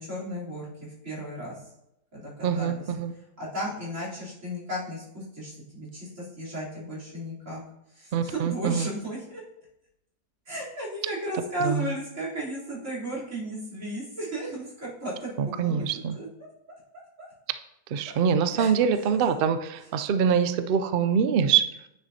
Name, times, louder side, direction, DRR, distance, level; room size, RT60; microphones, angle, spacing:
voice 1, 0.0-1.6 2.1-2.8 3.4-7.6 7.9-9.4 10.5-15.9 16.2-16.3 18.6-18.7 19.1-19.2, right 1 dB, 55° right, -7 dB, 3.9 m, -34 dB
voice 2, 2.4-3.1 8.1-8.9 11.6-11.9 15.4-16.2 17.9-21.6, right 7 dB, 85° right, 10 dB, 0.5 m, -24 dB
9.5 x 7.2 x 2.8 m, 0.83 s
omnidirectional pair, 1.6 m